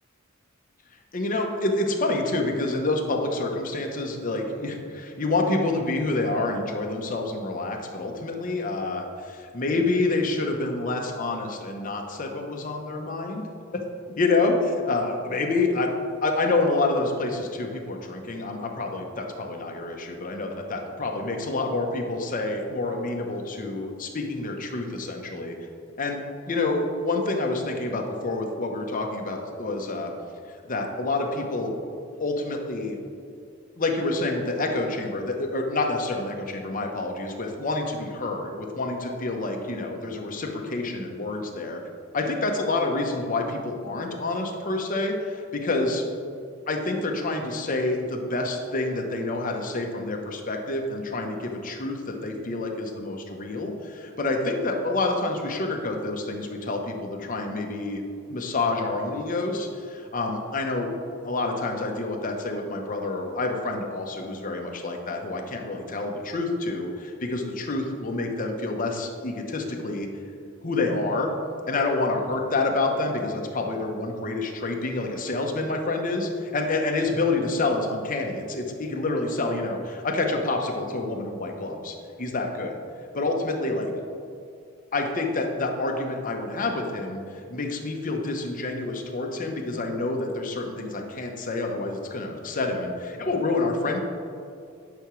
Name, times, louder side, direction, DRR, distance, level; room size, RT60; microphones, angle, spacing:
voice 1, 1.1-13.4 14.1-15.9 16.2-25.6 26.0-26.2 26.5-30.1 30.6-31.7 32.2-33.0 33.8-41.8 42.1-46.0 46.7-58.0 58.3-60.9 61.2-70.1 70.6-71.3 71.7-82.8 83.1-83.9 84.9-94.0, left 2 dB, 40° left, 2 dB, 0.9 m, -28 dB
10.5 x 5.8 x 3.2 m, 2.4 s
head